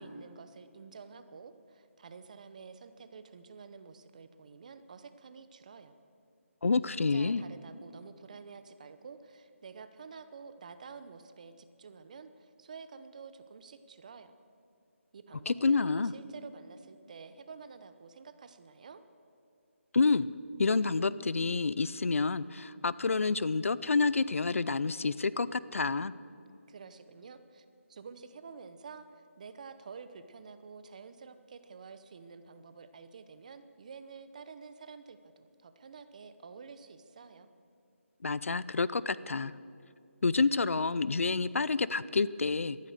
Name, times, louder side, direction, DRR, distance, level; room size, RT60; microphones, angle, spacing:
voice 1, 0.0-6.0 6.9-14.4 15.1-19.0 26.7-37.5, right 5 dB, 30° right, 11 dB, 0.7 m, -49 dB
voice 2, 6.6-7.4 15.5-16.1 19.9-20.3 20.6-26.1 38.2-39.5 40.2-42.8, left 4 dB, 75° left, 18 dB, 0.5 m, -28 dB
14.5 x 13.0 x 6.6 m, 2.5 s
figure-of-eight pair, 165°, 7 cm